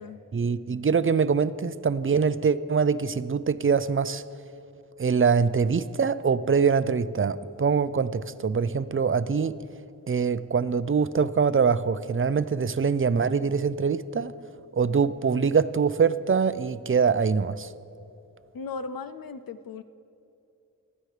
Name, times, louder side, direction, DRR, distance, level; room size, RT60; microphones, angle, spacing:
voice 1, 0.3-4.2 5.0-9.6 10.1-14.3 14.7-17.7, right 5 dB, 40° right, 0.5 m, -24 dB
voice 2, 18.5-19.8, left 4 dB, 90° left, 0.5 m, -37 dB
19.0 x 13.0 x 3.3 m
wide cardioid pair, 65°, 34 cm